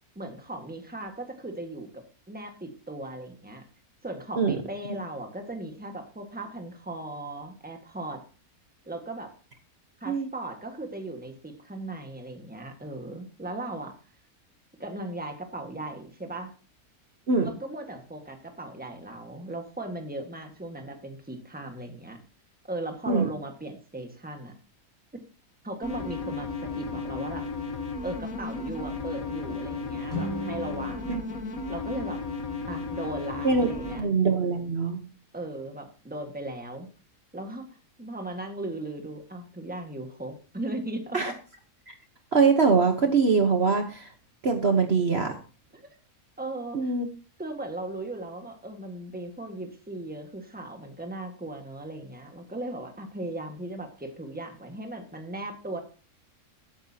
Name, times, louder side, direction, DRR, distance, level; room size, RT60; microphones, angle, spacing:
voice 1, 0.1-3.6 4.0-8.2 8.9-9.3 10.0-13.9 14.8-16.5 17.4-22.2 22.6-24.5 25.6-27.4 28.0-31.1 31.7-32.2 32.7-34.1 35.3-36.9 37.3-41.3 46.4-46.9 47.4-55.8, right 2 dB, 5° right, 4 dB, 1.6 m, -37 dB
sound 1, 25.8-34.0, left 4 dB, 70° left, 1.7 m, -34 dB
sound 2, 30.1-33.3, equal, 90° left, 6.3 m, -39 dB
voice 2, 34.0-35.0 41.1-41.3 41.9-42.0 42.3-44.1 44.4-45.3 46.7-47.1, right 4 dB, 45° right, 5 dB, 1.3 m, -23 dB
16.0 x 9.0 x 2.8 m, 0.37 s
omnidirectional pair, 1.5 m